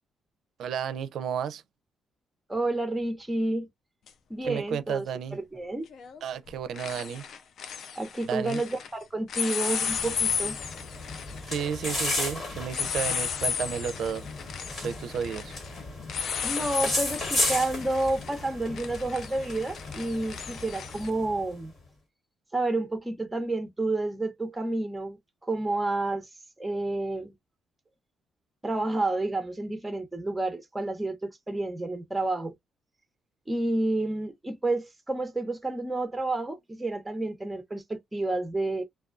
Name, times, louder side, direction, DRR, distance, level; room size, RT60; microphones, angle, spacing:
voice 1, 0.6-1.6 4.4-5.4 6.2-7.2 8.3-8.6 11.5-14.3 14.7-15.5, right 8 dB, 70° right, 0.4 m, -32 dB
voice 2, 2.5-3.7 4.3-5.0 5.3-5.9 8.0-10.5 16.4-21.7 22.5-25.2 25.4-26.3 26.6-27.3 28.6-32.5 33.5-38.8, right 2 dB, 10° right, 0.7 m, -30 dB
sound 1, 4.1-4.2 5.9-6.2 6.5-8.9 9.3-21.1, left 7 dB, 65° left, 0.4 m, -34 dB
sound 2, 9.8-21.5, left 2 dB, 45° left, 1.5 m, -35 dB
2.2 x 2.2 x 2.5 m
cardioid pair, 90°, 0 cm